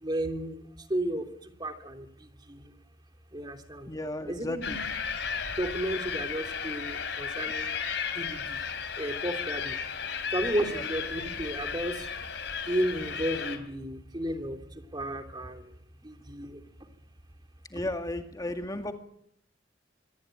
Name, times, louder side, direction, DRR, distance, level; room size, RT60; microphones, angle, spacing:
voice 1, 0.0-0.6 0.9-1.2 1.6-2.7 3.3-3.9 4.3-4.8 5.5-7.8 8.1-8.6 9.0-9.8 10.3-12.1 12.7-14.6 14.9-15.7 16.0-16.6, right 1 dB, 25° right, 5 dB, 3.0 m, -33 dB
voice 2, 3.9-4.8 10.7-10.8 17.7-18.9, left 1 dB, 20° left, 5 dB, 2.0 m, -34 dB
sound 1, 4.6-13.6, left 6 dB, 70° left, 3.9 m, -34 dB
26.0 x 20.5 x 9.0 m, 0.73 s
head